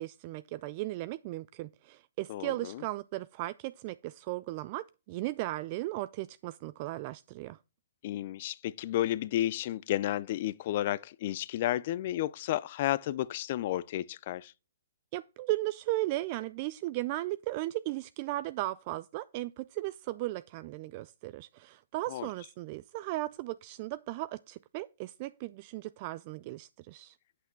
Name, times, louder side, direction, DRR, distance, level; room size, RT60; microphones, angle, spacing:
voice 1, 0.0-7.6 15.1-27.2, right 17 dB, 35° right, 0.4 m, -36 dB
voice 2, 2.3-2.8 8.0-14.5 22.1-22.3, left 13 dB, 45° left, 0.5 m, -32 dB
8.3 x 8.3 x 4.5 m
hypercardioid pair, 150°, 0 cm